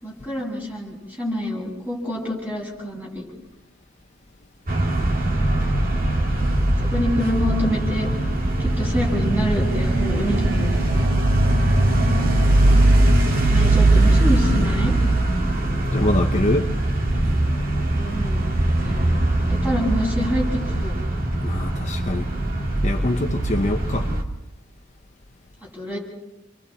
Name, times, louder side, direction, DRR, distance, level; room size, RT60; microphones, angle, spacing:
voice 1, 0.0-3.3 6.9-8.1 8.6-10.7 13.5-14.9 17.9-18.5 18.8-20.9 25.7-26.0, equal, 10° right, 8.0 m, -27 dB
sound 1, 4.7-24.2, right 1 dB, 50° right, 2.5 m, -20 dB
voice 2, 15.9-16.7 21.3-22.3 22.8-24.1, left 1 dB, 35° left, 1.1 m, -24 dB
29.5 x 23.5 x 4.3 m
head